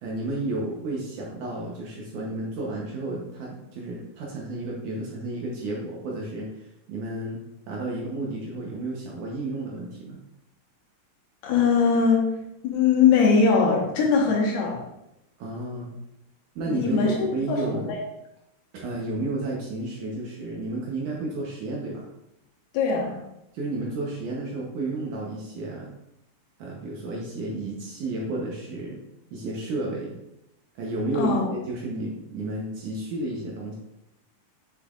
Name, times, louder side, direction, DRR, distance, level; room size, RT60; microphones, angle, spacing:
voice 1, 0.0-7.4 7.7-10.2 15.4-15.9 16.6-17.9 18.7-22.1 23.5-25.9 26.6-29.0 29.3-30.2 30.8-33.8, right 2 dB, 70° right, -3 dB, 2.1 m, -32 dB
voice 2, 11.4-12.2 12.6-14.8 16.7-18.0 22.7-23.2 31.1-31.5, left 5 dB, 80° left, -2 dB, 3.3 m, -21 dB
7.9 x 6.6 x 2.5 m, 0.87 s
omnidirectional pair, 4.5 m